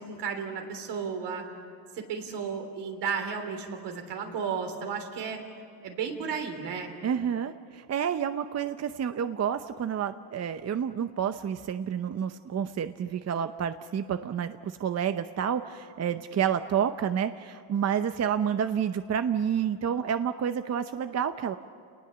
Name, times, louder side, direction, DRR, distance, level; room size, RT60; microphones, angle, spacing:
voice 1, 0.0-1.5 1.9-5.4 5.8-6.9, right 6 dB, 80° right, 4 dB, 3.5 m, -33 dB
voice 2, 7.0-21.6, right 8 dB, 40° right, 10 dB, 0.7 m, -29 dB
29.5 x 19.5 x 7.0 m, 2.4 s
cardioid pair, 105°, 41 cm